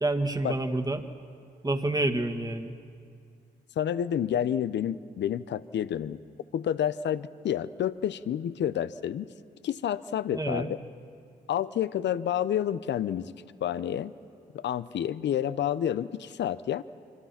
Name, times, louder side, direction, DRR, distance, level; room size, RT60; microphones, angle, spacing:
voice 1, 0.0-1.0 1.6-2.7 10.3-10.7, right 2 dB, 20° right, 7 dB, 2.0 m, -28 dB
voice 2, 3.8-6.2 6.5-9.3 9.6-10.7 11.5-13.3 13.6-14.1 14.5-16.8, left 10 dB, 65° left, 15 dB, 0.8 m, -29 dB
25.5 x 25.0 x 5.9 m, 2.4 s
supercardioid pair, 55°, 19 cm